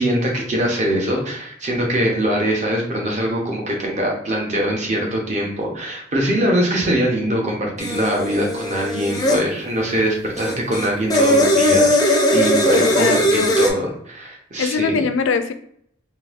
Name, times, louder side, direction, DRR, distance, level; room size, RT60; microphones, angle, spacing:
voice 1, 0.0-14.9, right 1 dB, 35° right, -1 dB, 0.8 m, -22 dB
sound 1, 7.8-9.4 10.4-13.7, left 1 dB, 20° left, 0.4 m, -18 dB
voice 2, 12.7-13.5 14.6-15.5, left 5 dB, 80° left, 9 dB, 0.4 m, -22 dB
3.9 x 2.6 x 2.4 m, 0.67 s
head